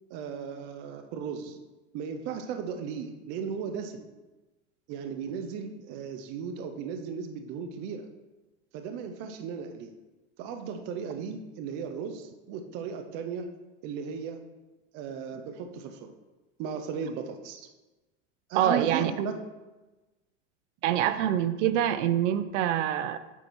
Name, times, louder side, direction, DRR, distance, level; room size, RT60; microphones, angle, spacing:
voice 1, 0.1-1.6 1.9-4.1 4.9-8.1 8.7-9.9 10.4-13.6 13.8-14.4 14.9-16.1 16.6-17.7 18.5-19.3, right 6 dB, 30° right, 6 dB, 0.4 m, -36 dB
voice 2, 18.5-19.1 20.8-23.2, right 10 dB, 75° right, 12 dB, 0.6 m, -25 dB
8.1 x 4.1 x 4.5 m, 1.1 s
supercardioid pair, 165°, 36 cm